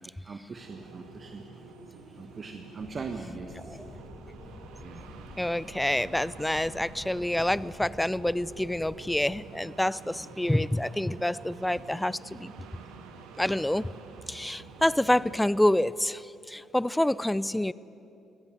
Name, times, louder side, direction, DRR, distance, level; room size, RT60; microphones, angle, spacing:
voice 1, 0.0-1.4 2.1-3.8 4.8-5.1, right 4 dB, 40° right, 6 dB, 1.4 m, -41 dB
sound 1, 0.5-15.4, right 5 dB, 75° right, 1.7 m, -48 dB
sound 2, 2.8-9.4, left 2 dB, 30° left, 1.8 m, -49 dB
voice 2, 5.4-12.5 13.4-13.9 14.3-17.7, left 1 dB, 10° left, 20 dB, 0.6 m, -27 dB
23.0 x 17.0 x 9.3 m, 2.8 s
hypercardioid pair, 45°, 0 cm